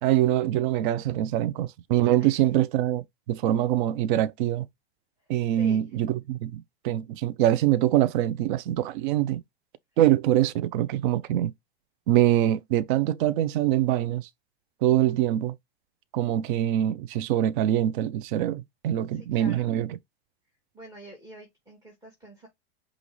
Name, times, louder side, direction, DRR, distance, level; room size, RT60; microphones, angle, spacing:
voice 1, 0.0-4.7 5.3-9.4 10.0-11.5 12.1-14.3 14.8-15.5 16.1-20.0, right 12 dB, 50° right, 0.5 m, -24 dB
voice 2, 2.2-2.6 5.2-5.8 19.1-19.7 20.7-22.5, right 1 dB, 10° right, 1.7 m, -47 dB
5.2 x 2.5 x 3.1 m
hypercardioid pair, 135°, 32 cm